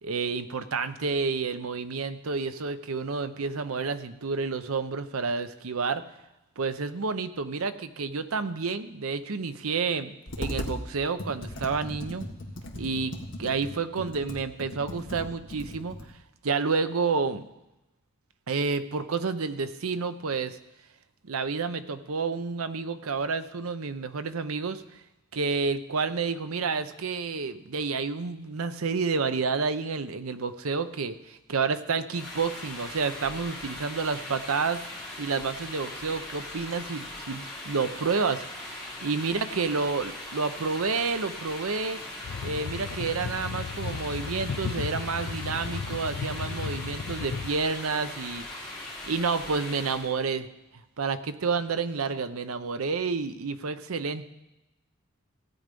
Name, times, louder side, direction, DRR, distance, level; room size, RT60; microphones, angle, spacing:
voice 1, 0.0-6.0 6.6-12.3 12.8-13.1 13.4-16.0 16.4-17.4 18.5-20.6 21.2-24.8 25.3-34.8 35.2-42.0 42.4-48.4 49.1-50.5 51.0-54.2, right 4 dB, 90° right, 11 dB, 0.7 m, -30 dB
Computer keyboard, 10.3-10.8 11.2-16.1, left 1 dB, 60° left, 1.6 m, -38 dB
sound 1, 32.1-50.1, left 1 dB, ahead, 3.8 m, -40 dB
sound 2, 42.2-47.5, left 5 dB, 90° left, 0.4 m, -35 dB
16.0 x 8.8 x 5.3 m, 0.96 s
head